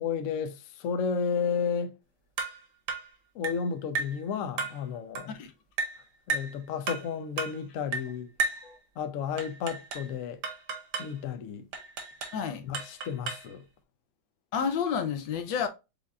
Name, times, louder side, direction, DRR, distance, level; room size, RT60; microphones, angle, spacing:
voice 1, 0.0-1.9 3.3-5.4 6.3-8.3 9.0-10.4 11.0-11.7 12.6-13.6, left 6 dB, 90° left, 0.7 m, -32 dB
sound 1, 2.4-2.6 2.9-3.1 3.4-3.6 4.0-4.2 4.6-4.8 5.2-5.3 5.8-6.0 6.3-6.5 6.9-7.1 7.4-7.6 7.9-8.1 8.4-8.7 9.4-10.1 10.4-11.1 11.7-12.4 12.7-13.5, right 4 dB, 65° right, 1.4 m, -33 dB
voice 2, 12.3-12.7 14.5-15.7, left 7 dB, 70° left, 1.4 m, -30 dB
5.5 x 3.6 x 2.3 m
omnidirectional pair, 2.2 m